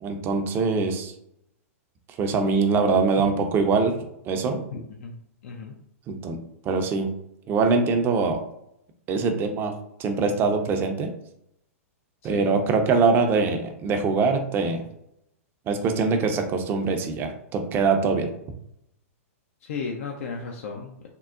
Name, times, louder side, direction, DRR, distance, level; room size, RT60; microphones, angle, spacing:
voice 1, 0.0-1.1 2.2-4.0 4.2-4.6 6.1-6.4 6.6-7.1 7.5-8.4 9.1-9.7 10.0-11.1 12.2-14.8 15.7-18.3, right 4 dB, 25° right, 5 dB, 0.5 m, -23 dB
voice 2, 4.7-5.7 12.2-12.6 19.6-21.1, left 4 dB, 60° left, 1 dB, 0.4 m, -35 dB
3.6 x 2.0 x 2.3 m, 0.78 s
hypercardioid pair, 115°, 8 cm